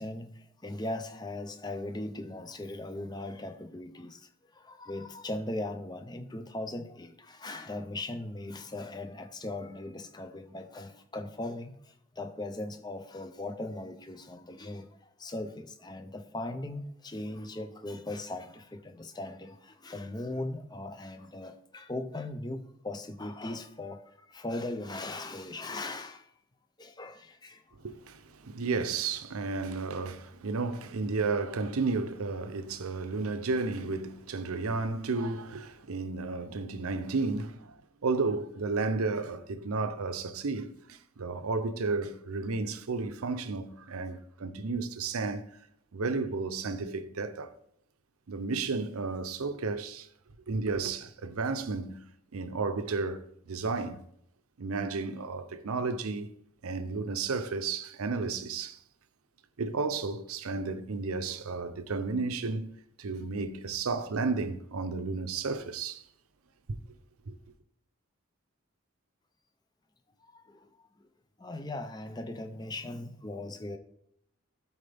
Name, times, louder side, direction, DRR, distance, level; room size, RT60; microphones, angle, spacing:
voice 1, 0.0-14.9 15.2-26.3 26.8-27.6 70.3-70.7 71.4-73.8, left 2 dB, 20° left, 0.5 m, -39 dB
voice 2, 27.8-37.7 38.0-45.4 45.9-47.5 48.3-50.1 50.5-52.0 52.3-54.0 54.6-56.3 56.6-58.8 59.6-62.7 63.0-66.0 66.7-66.8 67.3-67.4, right 4 dB, 90° right, 0.6 m, -32 dB
12.5 x 4.3 x 3.5 m
head